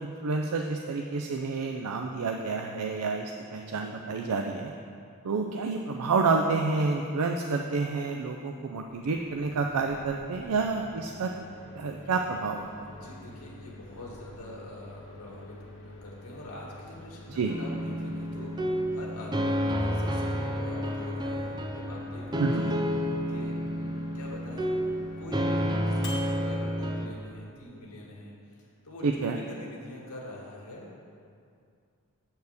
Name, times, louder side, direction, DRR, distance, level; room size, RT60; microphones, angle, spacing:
voice 1, 0.0-4.7 5.2-11.3 11.7-12.7 17.3-17.5 22.4-22.6 29.0-29.4, right 4 dB, 90° right, 3 dB, 0.5 m, -29 dB
Microwave oven, 8.8-27.6, left 1 dB, 55° left, 1.4 m, -47 dB
voice 2, 12.9-24.8 25.2-28.3 28.6-31.0, left 1 dB, 85° left, -3 dB, 1.7 m, -45 dB
sound 1, 17.5-27.1, equal, 20° right, 0.5 m, -30 dB
8.0 x 4.4 x 7.0 m, 2.4 s
head